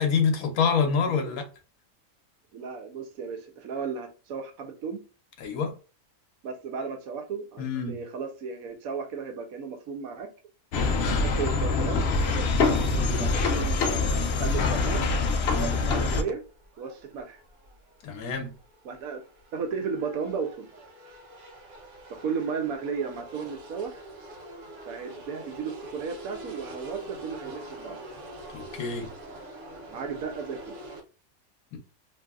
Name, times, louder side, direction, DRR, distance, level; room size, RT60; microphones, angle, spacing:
voice 1, 0.0-1.5 5.4-5.7 7.6-8.0 13.0-13.3 15.5-15.8 18.0-18.5 28.5-29.1 31.7-31.8, left 5 dB, 90° left, 1.2 m, -27 dB
voice 2, 2.5-5.0 6.4-10.3 11.0-12.0 13.2-15.1 15.6-16.4 16.8-17.4 18.8-19.2 19.5-20.7 22.2-24.0 24.9-28.0 29.9-30.8, right 5 dB, 80° right, 1.1 m, -34 dB
sound 1, 10.7-16.2, left 3 dB, 65° left, 0.6 m, -24 dB
sound 2, 16.4-31.0, right 1 dB, 65° right, 1.1 m, -45 dB
3.0 x 2.7 x 2.3 m
omnidirectional pair, 1.5 m